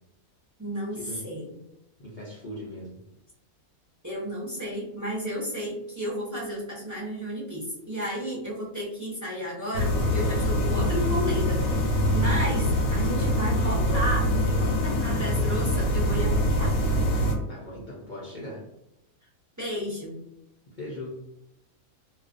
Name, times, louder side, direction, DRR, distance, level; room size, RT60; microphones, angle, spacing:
voice 1, 0.6-1.5 4.0-16.8 19.6-20.1, equal, 20° right, -7 dB, 0.5 m, -33 dB
voice 2, 2.0-3.0 12.3-12.5 17.5-18.7 20.7-21.2, left 1 dB, 70° left, -6 dB, 0.4 m, -39 dB
sound 1, 9.7-17.3, equal, 85° left, 1.1 m, -24 dB
2.3 x 2.2 x 2.5 m, 0.85 s
omnidirectional pair, 1.5 m